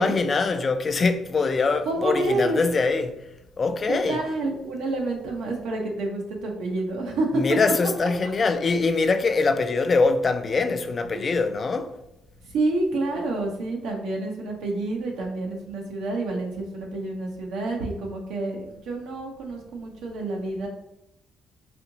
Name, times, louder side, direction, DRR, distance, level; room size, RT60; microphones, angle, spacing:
voice 1, 0.0-3.2 3.6-4.2 7.3-12.0, left 4 dB, 40° left, 0.4 m, -23 dB
voice 2, 1.8-2.6 3.9-7.6 11.1-11.4 12.5-20.7, right 2 dB, 90° right, 0.9 m, -28 dB
4.2 x 2.9 x 2.8 m
cardioid pair, 90°, 0 cm